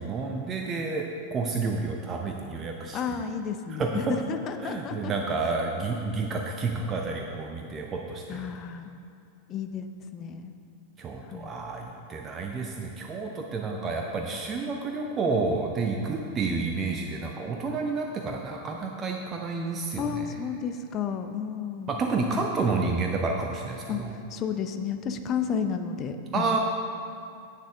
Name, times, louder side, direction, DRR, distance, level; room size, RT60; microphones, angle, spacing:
voice 1, 0.0-3.2 3.8-4.1 4.6-8.5 11.0-20.3 21.9-24.1 26.3-26.6, right 4 dB, 25° right, 1 dB, 0.6 m, -30 dB
voice 2, 2.9-5.1 8.3-8.9 9.5-9.9 10.1-10.5 11.3-11.5 20.0-21.9 23.9-26.6, left 7 dB, 30° left, 8 dB, 0.6 m, -32 dB
10.0 x 8.4 x 3.5 m, 2.4 s
figure-of-eight pair, 90°, 0 cm